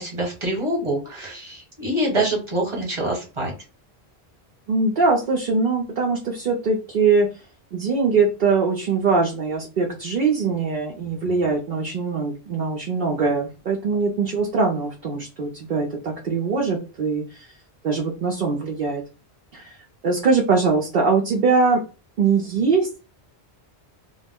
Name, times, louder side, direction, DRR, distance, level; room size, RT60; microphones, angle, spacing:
voice 1, 0.0-3.5, right 1 dB, 30° right, -2 dB, 1.1 m, -25 dB
voice 2, 4.7-7.3 7.7-17.5 17.8-19.0 19.5-19.7 20.0-21.8 22.2-23.0, right 4 dB, 55° right, -1 dB, 0.7 m, -22 dB
2.3 x 2.0 x 3.5 m, 0.32 s
omnidirectional pair, 1.1 m